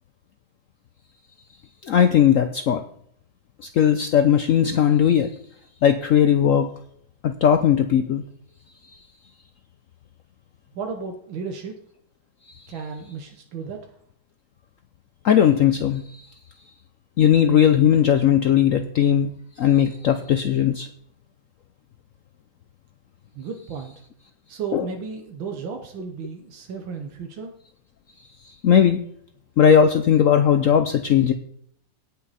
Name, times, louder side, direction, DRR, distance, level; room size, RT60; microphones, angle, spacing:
voice 1, 1.9-2.8 3.7-5.3 5.8-6.7 7.2-8.2 15.2-16.0 17.2-19.3 19.6-20.9 24.7-24.9 28.6-29.0 29.6-31.3, left 9 dB, 80° left, 8 dB, 0.7 m, -18 dB
voice 2, 10.8-11.8 12.7-13.9 23.4-23.9 24.5-27.5, right 5 dB, 85° right, 4 dB, 1.8 m, -34 dB
17.0 x 5.8 x 4.1 m, 0.69 s
omnidirectional pair, 2.1 m